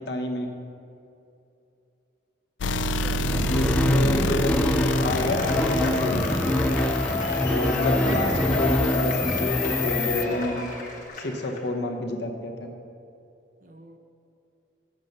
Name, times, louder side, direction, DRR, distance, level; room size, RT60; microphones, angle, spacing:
voice 1, 0.1-0.5 3.5-6.2 7.4-10.6 11.2-12.7, left 1 dB, 65° left, 3 dB, 0.9 m, -29 dB
sound 1, 2.6-10.2, left 3 dB, 85° left, 0.4 m, -29 dB
voice 2, 2.7-3.4 13.6-14.0, right 2 dB, 45° right, 6 dB, 0.7 m, -44 dB
sound 2, 3.2-10.7, left 1 dB, 5° left, 0.3 m, -25 dB
Cheering / Applause / Crowd, 4.8-11.6, left 2 dB, 45° left, 1.3 m, -30 dB
7.2 x 6.6 x 6.5 m, 2.7 s
head